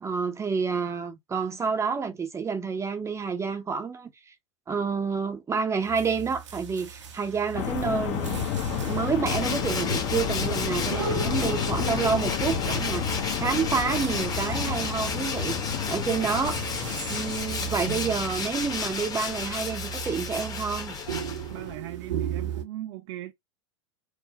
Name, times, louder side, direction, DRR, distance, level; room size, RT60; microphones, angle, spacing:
voice 1, 0.0-4.3 4.7-8.4 8.8-16.6 17.1-21.0, right 5 dB, 20° right, 0.7 m, -29 dB
sound 1, 5.8-22.6, right 8 dB, 80° right, 0.9 m, -37 dB
sound 2, 7.5-19.9, left 9 dB, 45° left, 1.0 m, -31 dB
Tools, 9.3-21.8, left 5 dB, 25° left, 1.1 m, -33 dB
voice 2, 21.5-23.3, right 14 dB, 55° right, 0.5 m, -38 dB
4.9 x 2.1 x 2.8 m
hypercardioid pair, 95°, 15 cm